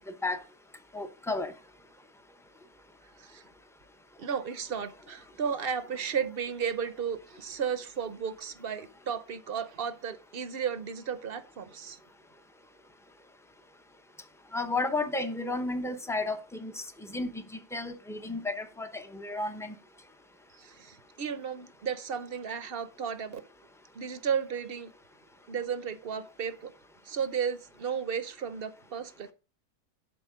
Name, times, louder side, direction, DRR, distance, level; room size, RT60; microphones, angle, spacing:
voice 1, 0.9-1.5 14.5-17.4 17.7-19.7, left 2 dB, 5° left, 0.4 m, -32 dB
voice 2, 4.2-12.0 20.6-23.4 23.9-24.9 25.5-26.7 27.0-29.3, right 7 dB, 50° right, 0.7 m, -34 dB
11.0 x 4.4 x 5.1 m
omnidirectional pair, 1.6 m